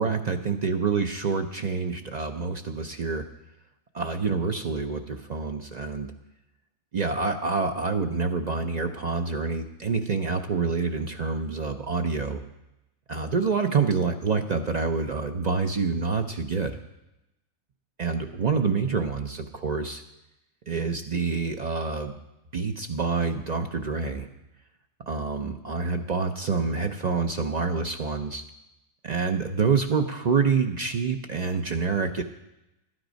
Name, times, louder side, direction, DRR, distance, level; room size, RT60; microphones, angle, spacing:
voice 1, 0.0-3.2 3.9-6.1 6.9-12.4 13.1-16.8 18.0-20.0 20.7-22.2 22.5-24.3 25.1-28.4 29.0-32.2, right 4 dB, 60° right, 5 dB, 0.4 m, -27 dB
11.5 x 9.6 x 5.1 m, 0.93 s
omnidirectional pair, 1.5 m